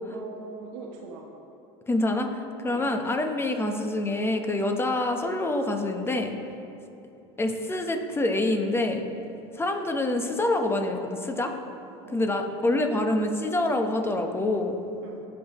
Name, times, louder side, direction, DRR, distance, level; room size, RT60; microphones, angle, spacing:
voice 1, 0.1-1.3 2.7-2.8 12.0-13.0 15.0-15.3, right 4 dB, 75° right, -1 dB, 1.0 m, -42 dB
voice 2, 1.9-6.3 7.4-9.0 9.5-11.5 12.1-14.8, left 2 dB, 15° left, 5 dB, 1.0 m, -26 dB
17.0 x 5.9 x 3.0 m, 2.9 s
supercardioid pair, 100°, 15 cm